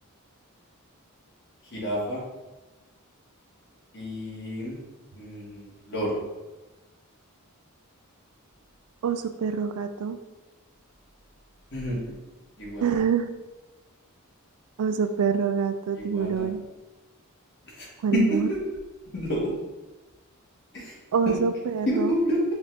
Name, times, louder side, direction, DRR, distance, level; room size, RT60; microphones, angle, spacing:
voice 1, 1.7-2.2 3.9-4.8 5.1-6.2 11.7-12.1 12.6-12.9 15.9-16.5 17.6-17.9 18.1-18.6 19.1-19.5 20.7-21.0 21.2-21.4 21.9-22.4, equal, 50° left, -5 dB, 1.4 m, -28 dB
voice 2, 9.0-10.2 12.8-13.3 14.8-16.6 18.0-18.5 21.1-22.1, right 6 dB, 80° right, 9 dB, 0.4 m, -26 dB
5.2 x 2.5 x 3.3 m, 1.1 s
head